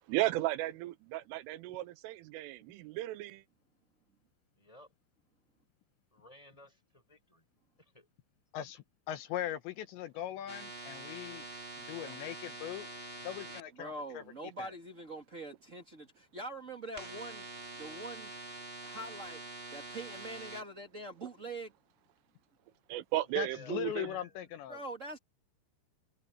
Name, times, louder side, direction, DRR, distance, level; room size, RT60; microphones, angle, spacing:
voice 1, 0.1-3.4 22.9-24.1, right 16 dB, 90° right, 3.4 m, -35 dB
voice 2, 4.6-4.9 6.1-7.4 7.8-7.9 23.2-24.5, equal, 5° left, 5.2 m, -56 dB
voice 3, 8.5-11.5 11.8-12.9 13.2-14.2 14.6-14.7 23.4-24.8, left 11 dB, 75° left, 3.0 m, -40 dB
sound 1, 10.5-13.6 17.0-20.6, right 3 dB, 20° right, 1.6 m, -45 dB
voice 4, 13.8-17.5 17.8-18.3 18.8-19.4 19.7-21.7 24.7-25.2, right 2 dB, 70° right, 0.7 m, -44 dB
omnidirectional pair, 5.7 m